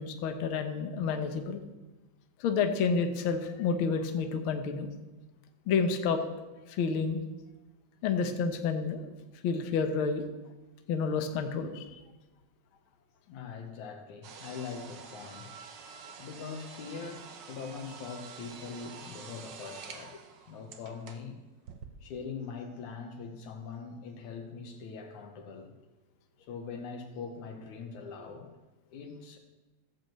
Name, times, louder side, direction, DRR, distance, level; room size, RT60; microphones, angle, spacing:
voice 1, 0.0-1.6 2.4-4.9 5.7-6.2 6.7-7.2 8.0-9.1 9.4-10.2 10.9-12.0, left 5 dB, 60° left, 6 dB, 1.5 m, -29 dB
voice 2, 13.3-15.5 16.2-20.2 20.5-21.4 22.0-25.7 26.4-28.5 28.9-29.4, left 5 dB, 90° left, 4 dB, 2.8 m, -42 dB
sound 1, 14.2-21.3 21.6-21.9, right 6 dB, 80° right, 1.0 m, -48 dB
15.5 x 5.3 x 7.6 m, 1.1 s
omnidirectional pair, 3.3 m